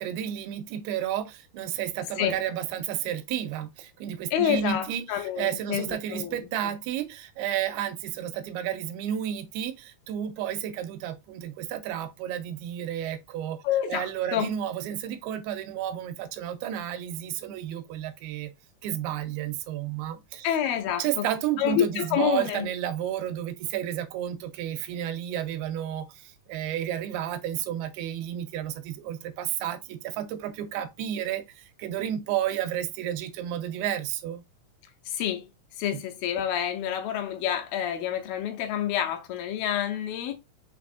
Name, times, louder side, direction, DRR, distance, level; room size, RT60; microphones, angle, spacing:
voice 1, 0.0-13.6 13.9-18.5 18.8-20.6 21.0-34.4 35.9-36.0, right 11 dB, 85° right, 2.5 m, -32 dB
voice 2, 4.3-6.4 6.6-6.7 13.6-14.5 20.4-21.2 21.6-22.7 35.1-35.5 35.8-40.3, left 10 dB, 80° left, 2.3 m, -28 dB
5.9 x 3.4 x 2.4 m
omnidirectional pair, 4.4 m